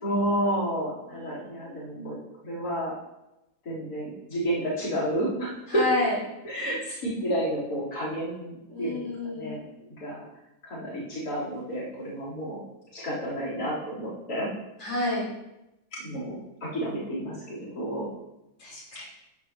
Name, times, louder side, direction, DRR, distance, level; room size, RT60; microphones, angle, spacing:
voice 1, 0.0-2.2 2.4-2.9 3.6-5.8 6.4-9.0 9.3-9.6 10.0-10.2 10.6-12.6 12.9-14.5 16.0-18.1, right 1 dB, 50° left, -8 dB, 4.7 m, -30 dB
voice 2, 1.1-1.9 5.7-6.2 8.7-9.7 14.8-15.3 18.6-19.0, left 2 dB, 80° left, -7 dB, 5.4 m, -30 dB
13.5 x 11.0 x 3.1 m, 0.92 s
omnidirectional pair, 2.0 m